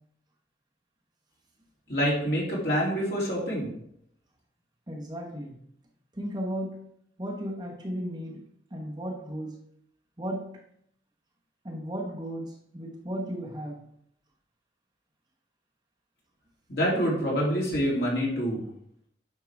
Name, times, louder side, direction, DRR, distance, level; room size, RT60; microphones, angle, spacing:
voice 1, 1.9-3.7 16.7-18.6, equal, 65° left, -4 dB, 3.2 m, -26 dB
voice 2, 4.9-5.6 6.1-6.9 7.2-9.6 10.2-10.6 11.6-13.8, equal, 25° right, -2 dB, 1.3 m, -35 dB
9.6 x 5.6 x 3.6 m, 0.71 s
head